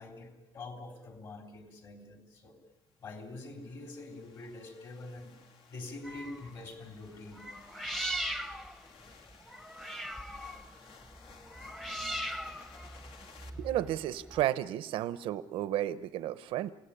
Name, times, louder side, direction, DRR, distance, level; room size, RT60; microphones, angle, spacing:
voice 1, 0.0-2.6 3.0-5.4 5.7-7.5 8.2-8.3, left 2 dB, 45° left, 4 dB, 3.7 m, -45 dB
sound 1, 3.1-13.5, left 6 dB, 75° left, 2.8 m, -57 dB
sound 2, 6.0-6.6 7.3-14.4, right 1 dB, 5° left, 0.9 m, -40 dB
voice 2, 13.6-16.7, right 13 dB, 90° right, 14 dB, 0.8 m, -32 dB
28.0 x 17.0 x 10.0 m, 1.1 s
cardioid pair, 170°, 9 cm